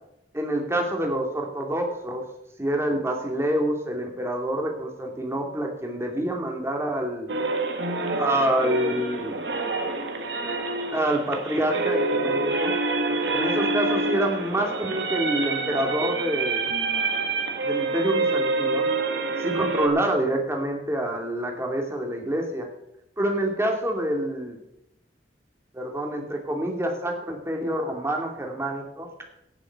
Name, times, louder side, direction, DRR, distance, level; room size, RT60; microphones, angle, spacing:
voice 1, 0.3-2.2 2.6-7.3 8.2-9.4 10.9-12.7 13.3-16.6 17.6-18.9 19.4-22.7 23.2-24.6 25.7-29.1, right 1 dB, 15° right, 2 dB, 2.4 m, -27 dB
sound 1, 7.3-19.9, right 3 dB, 75° right, 1.9 m, -27 dB
17.0 x 7.3 x 5.7 m, 0.83 s
head